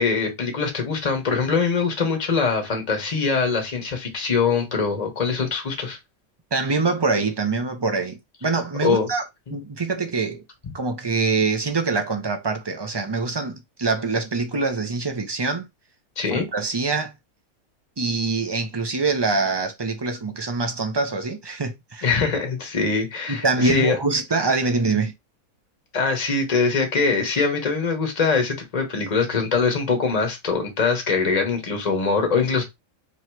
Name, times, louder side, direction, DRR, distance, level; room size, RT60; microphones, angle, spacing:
voice 1, 0.0-6.0 8.8-9.1 9.5-9.6 10.6-10.7 16.2-16.5 22.0-24.0 25.9-32.6, left 4 dB, 30° left, 1.1 m, -23 dB
voice 2, 6.5-9.2 9.5-10.4 10.7-15.7 16.3-17.1 18.0-22.1 23.3-25.1, right 3 dB, 30° right, 0.4 m, -24 dB
3.1 x 3.0 x 4.5 m
omnidirectional pair, 1.5 m